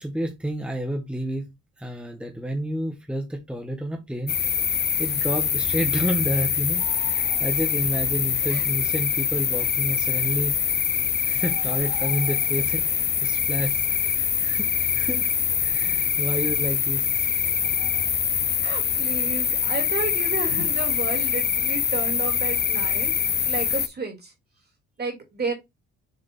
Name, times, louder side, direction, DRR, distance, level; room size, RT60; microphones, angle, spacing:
voice 1, 0.0-4.4 5.0-10.5 11.2-12.9 13.1-15.3 15.6-17.4, right 1 dB, 5° right, 1.2 m, -30 dB
sound 1, 4.3-23.9, left 7 dB, 35° left, 0.7 m, -24 dB
voice 2, 18.6-23.1 23.4-24.3 25.0-25.5, right 3 dB, 35° right, 2.8 m, -32 dB
7.0 x 3.6 x 3.7 m
cardioid pair, 90°, 30 cm